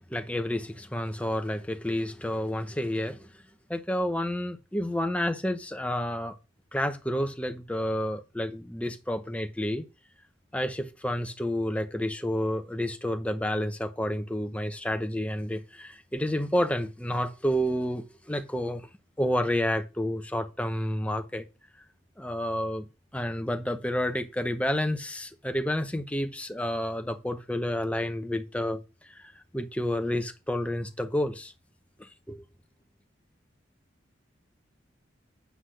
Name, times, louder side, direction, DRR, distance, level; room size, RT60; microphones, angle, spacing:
voice 1, 0.0-3.3 3.7-6.3 6.7-9.8 10.5-18.9 19.2-21.4 22.2-22.8 23.1-28.8 29.1-31.5 32.0-32.4, equal, 5° left, 0.8 m, -30 dB
8.2 x 4.0 x 6.3 m
head